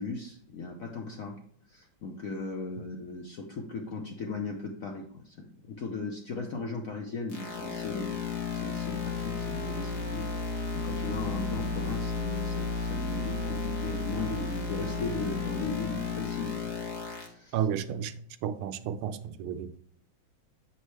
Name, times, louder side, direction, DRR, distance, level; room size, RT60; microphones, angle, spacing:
voice 1, 0.0-1.4 1.7-8.2 8.5-10.3 10.7-16.6 17.2-17.6, left 3 dB, 65° left, 0.8 m, -37 dB
sound 1, 7.3-17.3, left 4 dB, 40° left, 1.2 m, -33 dB
voice 2, 17.5-18.1 18.4-19.7, right 8 dB, 85° right, 1.5 m, -32 dB
7.8 x 5.4 x 3.3 m
omnidirectional pair, 2.3 m